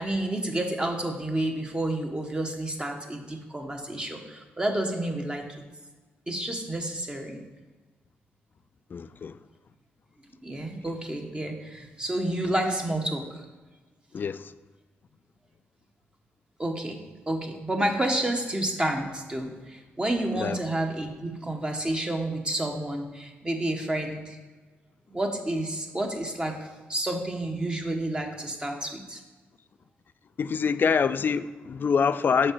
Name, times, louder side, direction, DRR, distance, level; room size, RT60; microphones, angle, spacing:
voice 1, 0.0-5.4 6.3-7.4 10.4-13.2 16.6-24.4 25.1-26.6 26.9-29.2, right 1 dB, 20° right, 3 dB, 1.1 m, -30 dB
voice 2, 8.9-9.4 14.1-14.5 20.3-20.6 30.4-32.5, left 6 dB, 50° left, 13 dB, 0.3 m, -25 dB
6.4 x 4.8 x 4.5 m, 1.3 s
cardioid pair, 65°, 4 cm